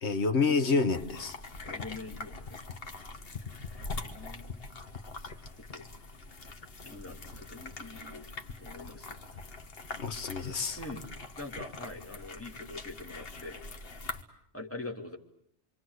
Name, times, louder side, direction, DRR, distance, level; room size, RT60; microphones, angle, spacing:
voice 1, 0.0-1.4 9.9-10.8, left 4 dB, 75° left, 10 dB, 1.6 m, -28 dB
sound 1, 0.9-14.2, left 3 dB, 60° left, 1.7 m, -43 dB
voice 2, 1.6-2.6 4.0-4.8 5.7-5.9 6.8-8.3 8.6-9.1 10.7-11.0 11.4-13.6 14.5-15.2, left 2 dB, 10° left, 1 dB, 2.8 m, -44 dB
27.0 x 25.5 x 8.0 m, 0.67 s
omnidirectional pair, 1.1 m